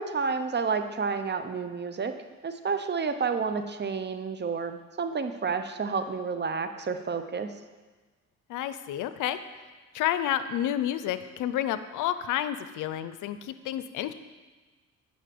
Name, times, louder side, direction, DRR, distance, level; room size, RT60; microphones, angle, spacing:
voice 1, 0.0-2.1 2.4-7.5, right 5 dB, 35° right, 9 dB, 0.8 m, -30 dB
voice 2, 8.5-9.4 9.9-14.1, left 11 dB, 85° left, 12 dB, 0.6 m, -30 dB
10.5 x 5.6 x 7.7 m, 1.3 s
cardioid pair, 90°, 30 cm